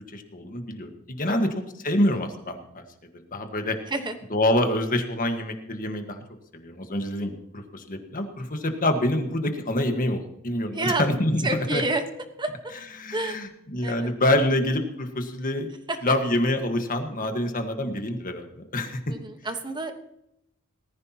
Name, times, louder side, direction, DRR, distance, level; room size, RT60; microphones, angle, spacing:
voice 1, 0.1-1.5 1.8-2.8 3.3-3.8 4.3-6.2 6.5-7.3 7.7-11.5 11.7-11.8 13.0-15.7 16.0-18.5 18.7-19.0, left 1 dB, 40° left, 6 dB, 1.5 m, -26 dB
voice 2, 10.7-11.1 11.4-12.0 12.4-12.7 13.1-13.4 13.8-14.1 15.9-16.0 19.1-19.9, right 2 dB, 20° right, 7 dB, 1.3 m, -29 dB
19.0 x 14.5 x 2.9 m, 0.80 s
head